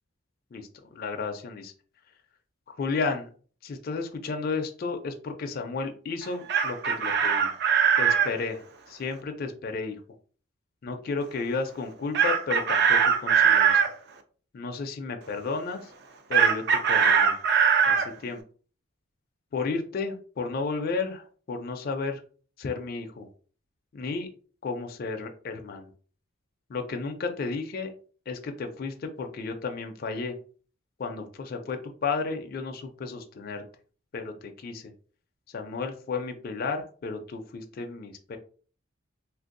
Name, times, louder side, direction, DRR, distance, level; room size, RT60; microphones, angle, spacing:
voice 1, 0.5-1.7 2.7-3.3 3.6-7.5 8.0-10.0 10.8-13.8 14.5-15.9 16.3-17.3 17.8-18.4 19.5-22.2 22.6-23.3 23.9-24.3 24.6-25.9 26.7-27.9 28.3-30.4 31.0-33.6 34.1-34.9 35.5-38.4, left 4 dB, 45° left, 5 dB, 0.4 m, -33 dB
Chicken rooster, 6.2-8.3 12.1-13.9 16.3-18.1, right 7 dB, 55° right, 0.4 m, -21 dB
3.3 x 2.5 x 2.5 m, 0.42 s
head